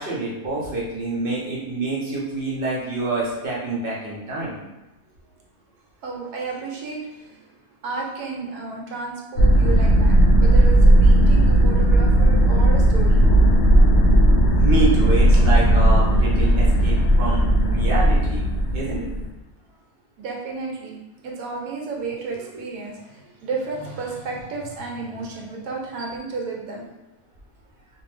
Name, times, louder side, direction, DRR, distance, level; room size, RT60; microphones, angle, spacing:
voice 1, 0.0-4.6 14.6-18.4 18.7-19.1, right 2 dB, 50° right, -5 dB, 0.7 m, -27 dB
voice 2, 6.0-7.4 7.8-13.2 20.2-26.8, right 4 dB, 80° right, -1 dB, 1.1 m, -32 dB
sound 1, 9.4-19.3, right 1 dB, 75° left, 0.6 m, -16 dB
2.6 x 2.2 x 3.2 m, 1.0 s
omnidirectional pair, 1.7 m